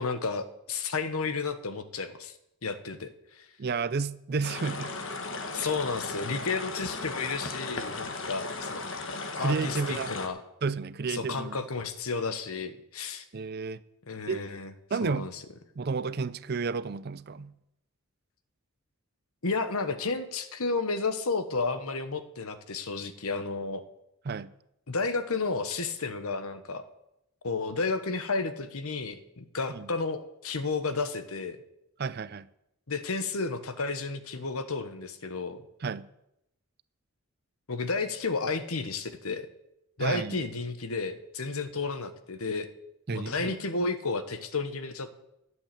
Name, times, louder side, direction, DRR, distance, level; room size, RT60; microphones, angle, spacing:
voice 1, 0.0-2.3 2.6-3.1 3.3-3.5 5.5-8.9 9.4-10.4 11.1-13.2 14.1-14.7 15.0-15.4 19.4-23.8 24.9-26.8 27.4-31.6 32.9-35.6 37.7-39.5 40.0-42.7 43.1-45.1, left 4 dB, 75° left, 1.1 m, -32 dB
voice 2, 3.6-5.0 5.6-5.7 9.4-10.1 10.6-11.6 13.3-13.8 14.3-14.5 14.9-15.3 15.8-17.5 24.3-24.5 29.7-29.9 32.0-32.5 35.8-36.1 40.0-40.4 43.1-43.6, right 4 dB, 45° right, 0.4 m, -31 dB
sound 1, 4.4-10.3, left 3 dB, 55° left, 1.3 m, -36 dB
12.0 x 7.8 x 7.6 m
head